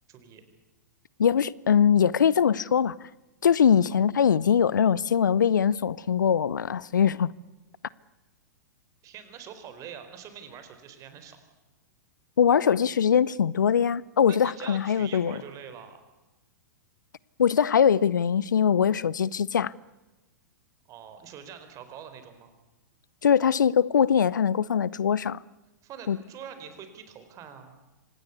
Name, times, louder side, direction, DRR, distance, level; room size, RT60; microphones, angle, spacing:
voice 1, 0.1-0.4 9.0-11.4 14.3-16.0 20.9-22.5 25.8-27.7, right 8 dB, 35° right, 4.5 m, -44 dB
voice 2, 1.2-3.0 3.4-7.3 12.4-15.4 17.4-19.7 23.2-25.4 26.1-26.2, left 7 dB, 75° left, 0.7 m, -22 dB
25.5 x 19.0 x 8.2 m
hypercardioid pair, 110°, 10 cm